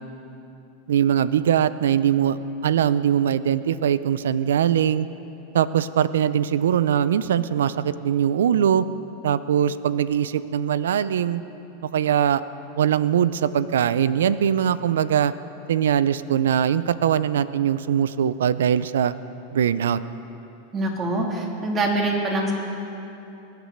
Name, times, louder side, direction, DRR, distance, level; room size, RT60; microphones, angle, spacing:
voice 1, 0.9-5.1 5.5-8.8 9.2-11.4 11.9-12.4 12.8-15.3 15.7-19.1 19.5-20.0, right 9 dB, 85° right, 16 dB, 0.5 m, -21 dB
voice 2, 20.7-22.5, right 2 dB, 30° right, 0 dB, 2.9 m, -24 dB
21.5 x 8.2 x 6.6 m, 2.9 s
hypercardioid pair, 115°, 0 cm